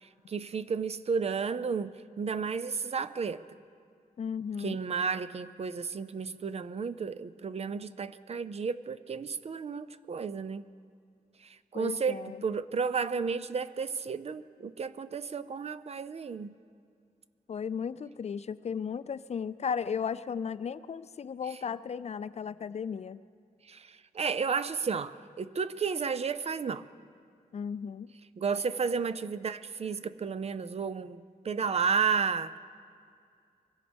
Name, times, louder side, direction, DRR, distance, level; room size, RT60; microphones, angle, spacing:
voice 1, 0.0-3.4 4.6-10.6 11.4-16.6 23.7-26.9 28.4-32.6, right 5 dB, 45° right, 14 dB, 0.5 m, -32 dB
voice 2, 4.2-4.8 11.7-12.4 17.5-23.2 27.5-28.1, left 7 dB, 45° left, 15 dB, 0.4 m, -35 dB
24.0 x 16.0 x 3.5 m, 2.3 s
wide cardioid pair, 130°, 15 cm